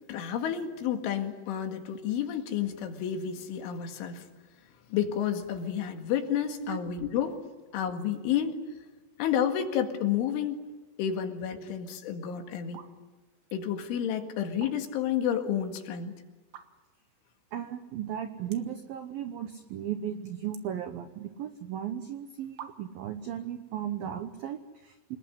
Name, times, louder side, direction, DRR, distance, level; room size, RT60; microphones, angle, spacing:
voice 1, 0.1-4.3 4.9-7.4 7.7-8.6 9.2-10.6 11.0-12.8 13.5-16.2, left 9 dB, 75° left, 5 dB, 4.3 m, -30 dB
sound 1, 12.7-12.9 13.3-13.6 14.4-15.1 15.5-15.6 16.4-17.0 17.5-17.6 17.8-17.9 18.5-18.8 19.2-19.7 20.0-21.4 22.1-22.2 22.6-23.1, right 9 dB, 70° right, 3.4 m, -48 dB
voice 2, 17.5-25.2, right 10 dB, 85° right, 8 dB, 2.1 m, -36 dB
28.0 x 20.0 x 9.8 m, 1.2 s
omnidirectional pair, 5.8 m